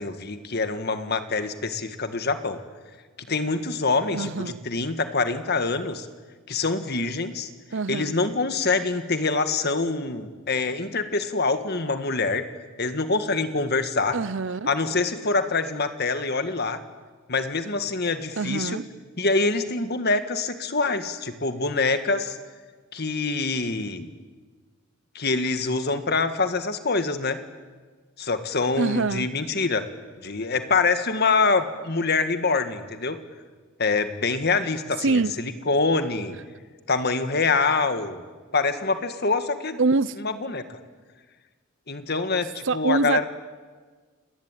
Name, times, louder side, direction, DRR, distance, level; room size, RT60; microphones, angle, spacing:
voice 1, 0.0-2.6 3.3-6.1 6.5-7.5 7.9-12.4 12.8-14.2 14.7-16.8 17.3-18.8 19.2-22.4 22.9-24.1 25.2-27.4 28.2-29.9 30.2-33.2 33.8-36.4 36.9-38.3 38.5-39.8 40.2-40.8 41.9-43.3, left 3 dB, 50° left, 1.8 m, -25 dB
voice 2, 4.1-4.6 7.7-8.1 14.1-14.7 18.4-18.9 28.8-29.3 35.0-35.3 39.8-40.2 42.6-43.2, right 3 dB, 65° right, 0.7 m, -24 dB
29.5 x 19.5 x 9.1 m
head